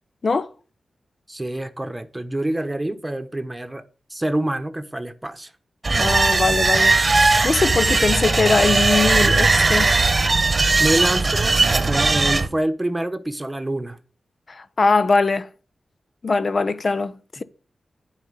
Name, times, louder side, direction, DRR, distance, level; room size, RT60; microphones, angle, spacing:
voice 1, 1.3-3.8 4.1-5.5 10.8-11.6 11.8-14.0, right 1 dB, 15° right, 1.3 m, -26 dB
sound 1, 5.8-12.5, right 3 dB, 45° right, 1.1 m, -18 dB
voice 2, 5.9-7.0 7.2-9.9 14.5-15.5 16.2-17.1, left 4 dB, 55° left, 0.7 m, -21 dB
9.3 x 5.0 x 7.0 m
cardioid pair, 55°, 0 cm